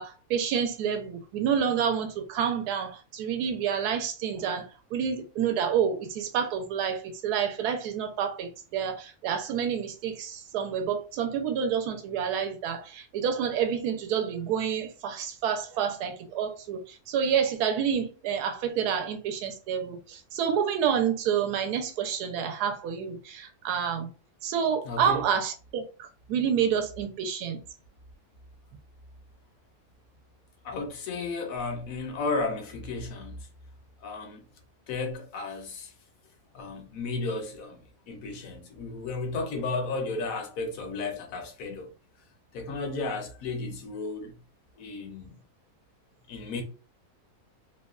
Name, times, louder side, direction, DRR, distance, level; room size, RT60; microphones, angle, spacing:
voice 1, 0.0-24.1 24.4-27.6, right 8 dB, 80° right, 1.1 m, -28 dB
voice 2, 24.8-25.2 30.6-33.5 34.0-34.4 34.9-35.9 36.5-41.9 42.5-44.3 44.8-45.4 46.3-46.6, left 3 dB, 70° left, 1.0 m, -34 dB
3.0 x 2.2 x 2.3 m
omnidirectional pair, 1.6 m